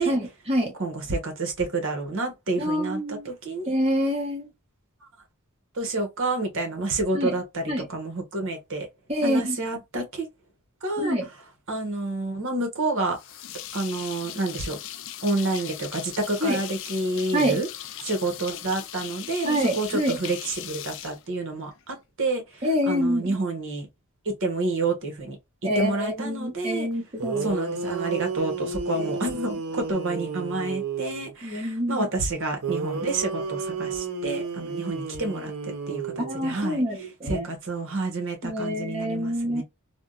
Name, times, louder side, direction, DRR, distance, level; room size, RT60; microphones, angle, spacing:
voice 1, 0.0-0.7 2.6-3.3 3.7-4.5 7.1-7.4 7.7-7.9 9.1-9.6 11.0-11.3 16.4-16.6 17.3-17.6 19.4-20.2 22.6-23.4 25.6-27.5 28.9-29.1 31.4-32.1 36.2-37.5 38.4-39.6, equal, 25° right, 1.0 m, -26 dB
voice 2, 0.8-3.7 5.7-8.9 9.2-10.3 10.8-11.2 11.7-13.2 13.7-14.8 15.2-17.7 18.0-23.9 24.2-25.4 25.8-26.9 27.4-36.8 37.3-39.6, right 2 dB, 60° right, 1.1 m, -29 dB
sound 1, 13.1-21.9, left 11 dB, 55° left, 0.4 m, -39 dB
sound 2, 26.9-27.0 27.2-31.4 32.6-36.6, right 4 dB, 85° right, 0.7 m, -32 dB
3.5 x 2.2 x 2.4 m
head